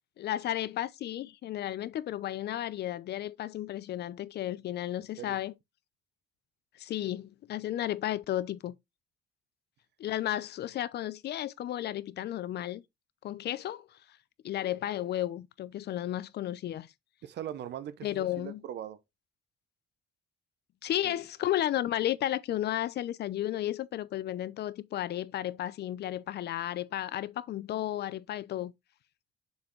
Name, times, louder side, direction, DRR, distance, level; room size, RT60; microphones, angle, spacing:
voice 1, 0.2-5.5 6.8-8.7 10.0-12.8 13.2-13.9 14.4-16.9 18.0-18.6 20.8-28.7, left 12 dB, 70° left, 0.6 m, -33 dB
voice 2, 17.2-19.0 21.0-21.2, right 10 dB, 75° right, 0.8 m, -40 dB
6.9 x 4.4 x 3.1 m
cardioid pair, 105°, 18 cm